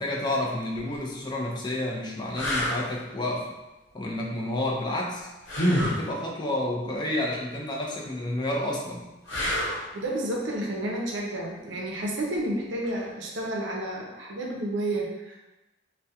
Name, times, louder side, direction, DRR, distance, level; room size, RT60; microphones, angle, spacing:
voice 1, 0.0-3.5 3.9-5.3 5.7-9.1, left 1 dB, 25° left, -3 dB, 0.4 m, -30 dB
sound 1, 0.8-1.0 1.6-1.7 2.3-2.8 5.5-6.0 9.3-9.9 12.8-13.0, equal, 90° left, 0.8 m, -26 dB
voice 2, 9.9-15.4, right 1 dB, 70° right, -2 dB, 0.5 m, -31 dB
2.3 x 2.1 x 2.7 m, 1.0 s
head